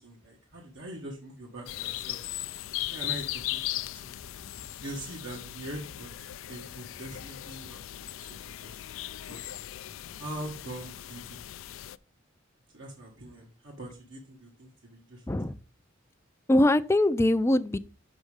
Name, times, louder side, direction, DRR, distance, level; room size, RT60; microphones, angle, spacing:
voice 1, 0.0-2.2 2.9-4.3 4.8-6.1 6.5-8.0 8.3-8.8 9.1-9.5 10.2-11.4 12.7-15.2, right 1 dB, 75° right, 1.6 m, -43 dB
sound 1, 1.7-12.0, left 14 dB, 80° left, 0.4 m, -38 dB
voice 2, 16.5-17.8, left 1 dB, 15° left, 0.4 m, -22 dB
6.5 x 6.2 x 4.9 m
head